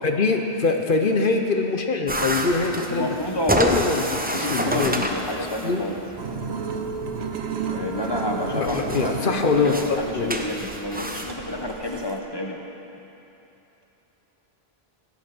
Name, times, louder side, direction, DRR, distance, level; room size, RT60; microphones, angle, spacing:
voice 1, 0.0-3.1 3.5-5.0 5.6-5.8 8.5-10.4, left 4 dB, 55° left, 4 dB, 1.0 m, -23 dB
sound 1, 2.1-11.3, right 1 dB, 10° right, 0.6 m, -29 dB
voice 2, 2.9-3.6 4.2-6.0 7.7-12.6, left 1 dB, 25° left, 1 dB, 1.1 m, -30 dB
sound 2, 6.2-12.2, right 5 dB, 90° right, 1.1 m, -32 dB
16.5 x 8.5 x 6.0 m, 3.0 s
omnidirectional pair, 1.1 m